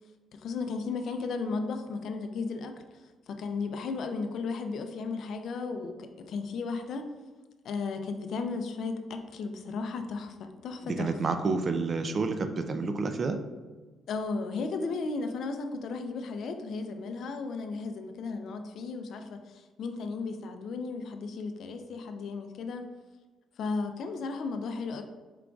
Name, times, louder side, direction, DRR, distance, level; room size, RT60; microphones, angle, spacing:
voice 1, 0.3-2.7 3.0-7.1 7.6-11.1 14.1-22.8 23.6-25.0, left 4 dB, 70° left, 6 dB, 0.4 m, -35 dB
voice 2, 10.8-13.4, right 4 dB, 40° right, 8 dB, 0.3 m, -29 dB
4.7 x 3.7 x 2.3 m, 1.3 s
cardioid pair, 90°, 0 cm